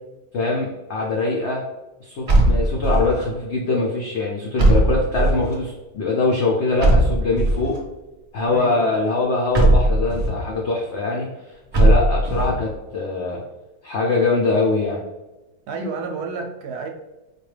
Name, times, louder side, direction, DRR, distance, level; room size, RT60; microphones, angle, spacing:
voice 1, 0.3-1.6 2.0-7.7 8.3-11.3 11.7-13.4 13.8-15.0, left 3 dB, 80° left, -2 dB, 0.6 m, -22 dB
sound 1, 2.3-3.2 4.6-5.5 6.8-7.8 9.5-10.4 11.7-12.6, right 1 dB, 55° right, 0.4 m, -17 dB
voice 2, 8.4-9.0 15.7-16.9, right 4 dB, 70° right, 2 dB, 1.0 m, -30 dB
4.6 x 2.3 x 3.2 m, 1.1 s
omnidirectional pair, 1.9 m